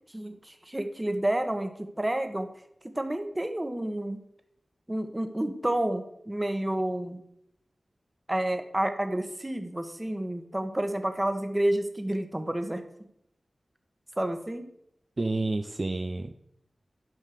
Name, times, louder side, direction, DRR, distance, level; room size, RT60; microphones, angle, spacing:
voice 1, 0.1-1.7 2.0-2.5 2.9-4.2 4.9-7.2 8.3-12.8 14.2-14.7, right 1 dB, 15° right, 7 dB, 1.2 m, -29 dB
voice 2, 15.2-16.3, right 2 dB, 40° right, 6 dB, 0.5 m, -29 dB
10.5 x 5.6 x 6.7 m, 0.75 s
wide cardioid pair, 90°, 0 cm